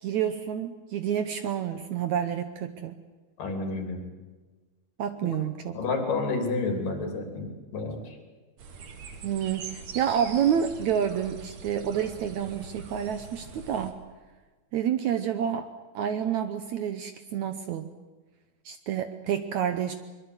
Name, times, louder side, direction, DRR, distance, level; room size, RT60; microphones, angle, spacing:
voice 1, 0.0-3.0 5.0-5.8 9.2-14.0 14.7-15.7 15.9-17.9 18.7-19.9, right 9 dB, 70° right, 9 dB, 1.9 m, -29 dB
voice 2, 3.4-4.0 5.2-5.3 5.7-8.0, left 3 dB, 65° left, 4 dB, 4.8 m, -30 dB
sound 1, 8.6-13.9, right 5 dB, 55° right, 2.9 m, -43 dB
23.0 x 23.0 x 8.0 m, 1.3 s
omnidirectional pair, 4.2 m